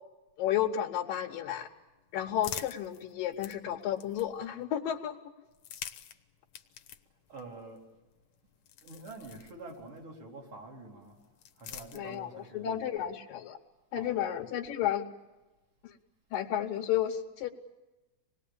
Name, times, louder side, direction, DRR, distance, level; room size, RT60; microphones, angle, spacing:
voice 1, 0.4-1.7 2.1-5.2 11.9-13.6 13.9-15.0 15.8-16.0 16.3-17.5, left 11 dB, 85° left, 2.7 m, -32 dB
sound 1, 1.6-4.6 5.4-10.0 11.0-12.5, left 10 dB, 65° left, 2.1 m, -47 dB
voice 2, 7.3-7.9 8.8-11.2 11.6-13.0 13.9-14.4, right 3 dB, 40° right, 4.3 m, -47 dB
26.5 x 20.0 x 8.6 m
omnidirectional pair, 3.8 m